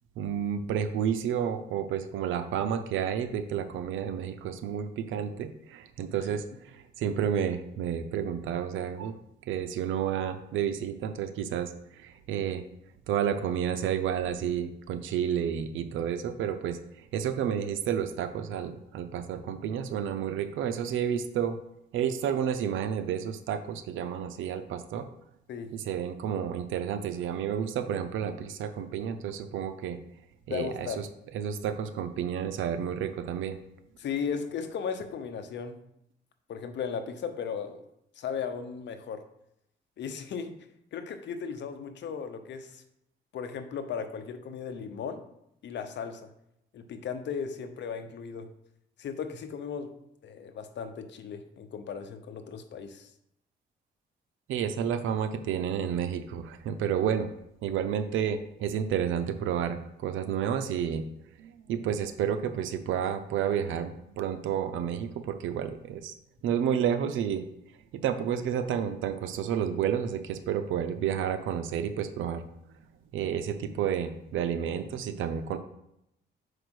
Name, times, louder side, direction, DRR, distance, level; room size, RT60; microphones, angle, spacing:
voice 1, 0.2-9.2 9.5-12.6 13.1-21.6 21.9-25.1 25.7-30.0 30.5-31.1 31.3-33.6 54.5-57.3 57.6-61.0 61.4-66.1 66.4-67.4 67.9-72.4 73.1-75.6, right 8 dB, 80° right, 8 dB, 0.6 m, -30 dB
voice 2, 30.5-31.0 34.0-35.8 36.5-37.8 38.2-39.3 40.0-40.6 40.9-42.8 43.3-45.2 45.6-46.3 46.7-48.5 49.0-49.9 50.2-53.1, left 6 dB, 65° left, 8 dB, 0.9 m, -36 dB
4.9 x 4.8 x 6.2 m, 0.80 s
cardioid pair, 90°, 20 cm